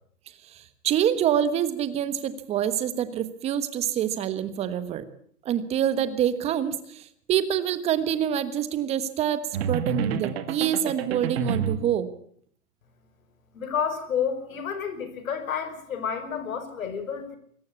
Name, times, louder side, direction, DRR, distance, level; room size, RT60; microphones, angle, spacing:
voice 1, 0.4-5.0 5.4-12.1, right 10 dB, 15° right, 13 dB, 1.3 m, -26 dB
sound 1, 9.5-11.9, right 6 dB, 40° right, 1.9 m, -29 dB
voice 2, 13.5-17.4, left 7 dB, 60° left, 8 dB, 5.6 m, -30 dB
24.5 x 14.5 x 8.4 m, 0.62 s
hypercardioid pair, 145°, 46 cm